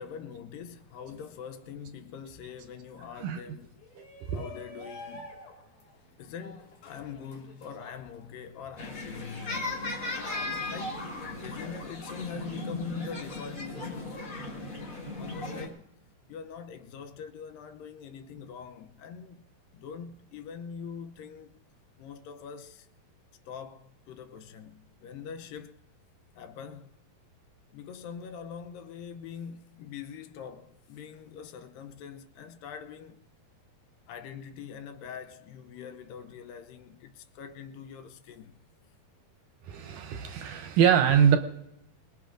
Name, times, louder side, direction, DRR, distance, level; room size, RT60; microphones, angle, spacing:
voice 1, 0.0-3.8 4.3-5.3 6.2-9.7 10.7-11.1 11.4-14.4 15.2-15.9 16.3-19.4 19.7-21.6 22.0-22.9 23.5-25.8 26.4-26.9 27.7-33.2 34.1-38.5, left 7 dB, 80° left, 2.3 m, -43 dB
Shout, 3.8-8.9, left 2 dB, 60° left, 3.2 m, -48 dB
voice 2, 3.9-4.5 39.7-41.4, right 8 dB, 75° right, 2.0 m, -24 dB
sound 1, 8.8-15.7, left 2 dB, 35° left, 1.4 m, -36 dB
25.5 x 19.5 x 2.5 m
omnidirectional pair, 4.1 m